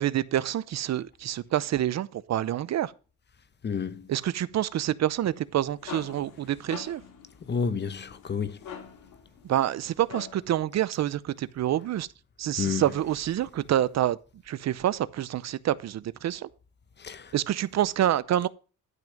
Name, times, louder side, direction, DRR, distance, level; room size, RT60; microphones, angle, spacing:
voice 1, 0.0-2.9 4.1-7.0 9.4-12.1 12.4-14.2 14.5-16.5 17.3-18.5, right 12 dB, 60° right, 0.6 m, -27 dB
voice 2, 3.6-4.1 7.5-8.6 12.6-12.8 17.0-17.3, left 6 dB, 35° left, 1.0 m, -30 dB
sound 1, 5.4-10.6, left 7 dB, 85° left, 2.7 m, -45 dB
12.0 x 6.1 x 5.2 m
cardioid pair, 130°, 30 cm